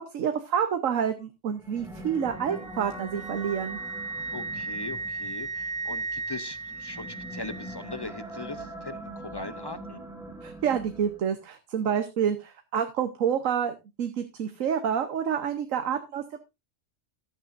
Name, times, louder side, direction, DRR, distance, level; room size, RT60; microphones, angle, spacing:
voice 1, 0.0-3.8 10.4-16.4, right 8 dB, 85° right, 8 dB, 1.3 m, -28 dB
sound 1, 1.5-11.4, right 1 dB, ahead, 2.8 m, -43 dB
Wind instrument woodwind instrument, 2.2-8.2, right 4 dB, 45° right, 1.1 m, -36 dB
voice 2, 4.3-10.0, left 3 dB, 30° left, 12 dB, 0.4 m, -40 dB
14.0 x 11.0 x 2.6 m, 0.24 s
omnidirectional pair, 1.3 m